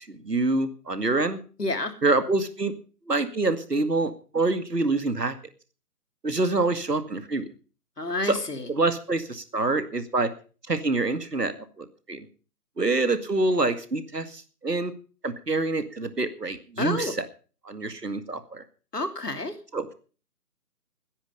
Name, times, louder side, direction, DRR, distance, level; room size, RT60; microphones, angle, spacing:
voice 1, 0.1-1.4 2.0-2.7 3.1-5.3 6.2-7.5 8.3-8.4 8.7-10.3 10.7-11.5 11.8-12.3 12.8-14.9 15.2-17.1 17.7-18.6 19.7-19.9, right 2 dB, 80° right, 10 dB, 2.2 m, -26 dB
voice 2, 1.6-1.9 8.0-8.7 16.8-17.1 18.9-19.5, left 2 dB, 75° left, 7 dB, 3.0 m, -29 dB
17.0 x 10.0 x 5.5 m, 0.38 s
figure-of-eight pair, 155°, 48 cm